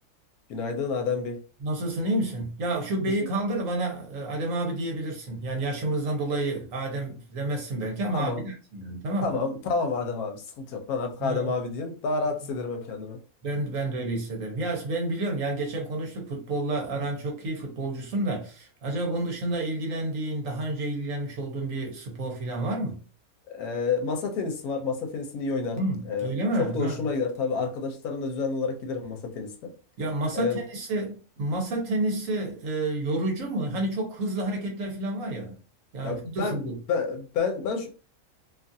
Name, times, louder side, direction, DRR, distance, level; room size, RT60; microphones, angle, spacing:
voice 1, 0.5-1.4 8.1-8.4 9.2-13.2 23.5-29.7 30.3-30.6 36.0-37.9, left 4 dB, 80° left, 1.1 m, -29 dB
voice 2, 1.6-9.3 11.2-11.5 13.4-23.0 25.8-27.0 30.0-35.6 35.9-36.8, right 2 dB, 65° right, 1.2 m, -30 dB
2.8 x 2.4 x 2.6 m
omnidirectional pair, 1.6 m